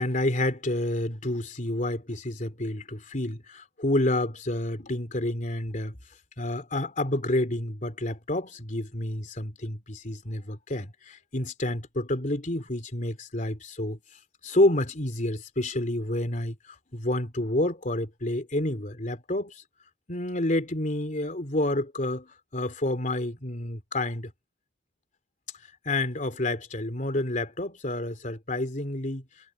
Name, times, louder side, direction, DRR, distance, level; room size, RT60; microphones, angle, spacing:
voice 1, 0.0-6.0 6.4-14.0 14.4-19.5 20.1-24.3 25.8-29.2, left 1 dB, 45° left, 3.3 m, -29 dB
head